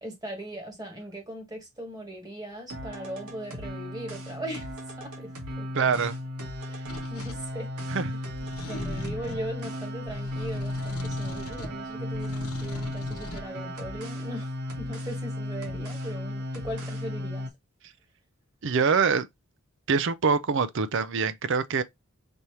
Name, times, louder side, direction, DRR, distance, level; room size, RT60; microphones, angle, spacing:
voice 1, 0.0-5.3 5.6-5.9 6.6-7.7 8.6-14.5 14.8-17.5, right 1 dB, 15° right, 1.6 m, -39 dB
sound 1, 2.7-17.5, left 1 dB, 75° right, 1.6 m, -35 dB
voice 2, 5.7-6.2 7.9-8.1 18.6-19.3 19.9-21.8, right 5 dB, 55° right, 0.5 m, -24 dB
sound 2, 6.9-7.4 8.4-9.5 10.1-11.8 12.1-13.5, left 1 dB, 80° left, 1.0 m, -40 dB
5.2 x 2.9 x 3.1 m
head